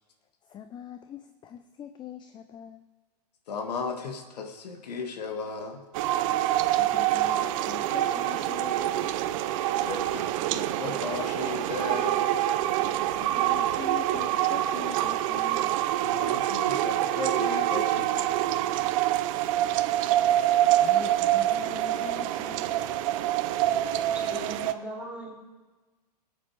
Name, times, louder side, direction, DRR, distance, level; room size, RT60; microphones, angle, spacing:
voice 1, 0.4-2.8 6.7-9.2 13.1-15.9 20.6-22.9, left 9 dB, 20° left, 9 dB, 0.6 m, -43 dB
voice 2, 3.5-5.8 9.7-12.3 16.0-18.3, left 4 dB, 80° left, 4 dB, 1.8 m, -35 dB
sound 1, 5.9-24.7, right 13 dB, 55° right, 0.7 m, -26 dB
voice 3, 24.1-25.3, equal, 5° right, -4 dB, 3.7 m, -39 dB
18.5 x 8.9 x 4.7 m, 1.3 s
hypercardioid pair, 120°, 21 cm